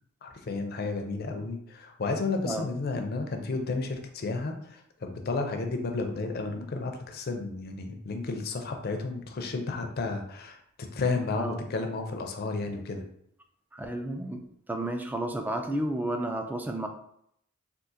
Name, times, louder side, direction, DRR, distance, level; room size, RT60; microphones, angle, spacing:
voice 1, 0.2-10.6 10.9-13.0, left 3 dB, 50° left, 4 dB, 0.5 m, -32 dB
voice 2, 13.7-16.9, right 1 dB, 10° right, 5 dB, 0.3 m, -32 dB
3.7 x 2.4 x 2.7 m, 0.71 s
head